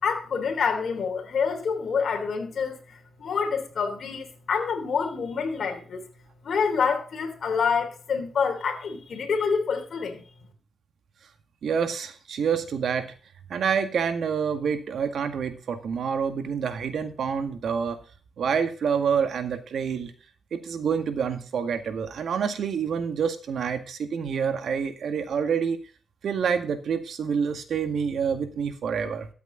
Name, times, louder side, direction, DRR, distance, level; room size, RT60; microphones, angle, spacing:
voice 1, 0.0-6.0 6.4-10.2, left 5 dB, 60° left, 3.2 m, -27 dB
voice 2, 11.6-13.1 13.5-18.0 18.4-20.1 20.5-25.8 26.2-29.3, right 6 dB, 70° right, 1.8 m, -27 dB
13.5 x 8.3 x 3.9 m
cardioid pair, 100°, 0 cm